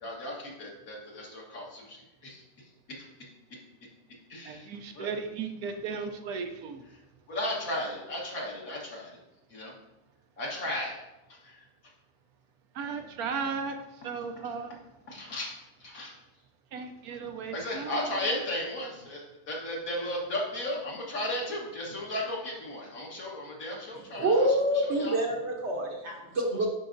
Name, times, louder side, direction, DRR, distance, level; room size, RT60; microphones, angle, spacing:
voice 1, 0.0-2.4 3.0-3.1 4.3-4.7 5.0-5.1 7.3-9.2 9.5-9.7 10.4-11.0 11.3-11.6 15.1-16.1 17.5-24.5 24.7-25.2, left 1 dB, 60° left, -2 dB, 1.8 m, -35 dB
voice 2, 4.4-6.8 12.7-14.8 16.7-18.0, right 5 dB, 75° right, 6 dB, 1.0 m, -36 dB
voice 3, 24.2-26.7, right 1 dB, 50° right, 0 dB, 1.0 m, -26 dB
10.5 x 4.6 x 2.6 m, 0.96 s
omnidirectional pair, 1.7 m